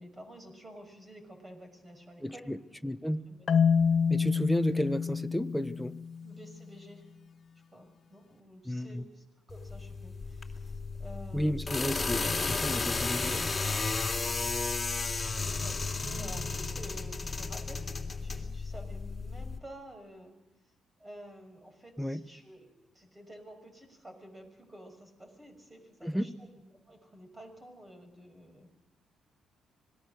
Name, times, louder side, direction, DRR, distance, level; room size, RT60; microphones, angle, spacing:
voice 1, 0.0-2.5 3.3-3.5 6.2-7.1 7.7-11.8 15.6-17.9 18.2-20.4 21.0-22.7 22.9-26.3 26.9-28.7, right 1 dB, 20° right, 6 dB, 6.0 m, -50 dB
voice 2, 2.2-3.3 4.1-6.0 8.6-9.0 11.3-13.5 22.0-22.3 26.0-26.3, equal, ahead, 9 dB, 1.1 m, -33 dB
Marimba xylophone, 3.5-6.5, left 6 dB, 50° left, 0.8 m, -27 dB
sound 1, 9.5-19.6, left 4 dB, 20° left, 3.1 m, -33 dB
26.0 x 19.0 x 6.5 m, 0.93 s
cardioid pair, 90°, 0 cm